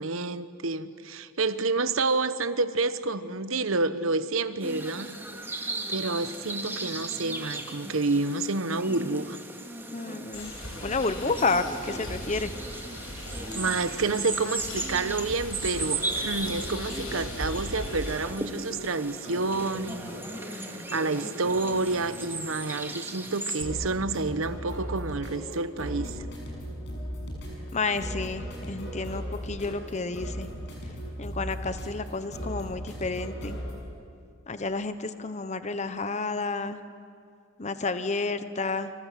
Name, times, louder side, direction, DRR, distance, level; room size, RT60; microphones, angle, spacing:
voice 1, 0.0-5.1 5.5-9.4 13.1-13.2 13.5-26.2, right 3 dB, 75° right, 1.0 m, -29 dB
sound 1, 4.6-23.6, right 2 dB, 10° right, 2.2 m, -37 dB
voice 2, 9.9-10.5 10.8-12.5 27.7-30.5 31.2-33.6 34.5-36.8 37.6-38.9, left 3 dB, 35° left, 1.0 m, -30 dB
sound 2, 10.3-18.2, left 1 dB, 80° left, 5.9 m, -39 dB
sound 3, 15.4-33.7, equal, 55° left, 7.2 m, -39 dB
29.5 x 26.0 x 7.6 m
head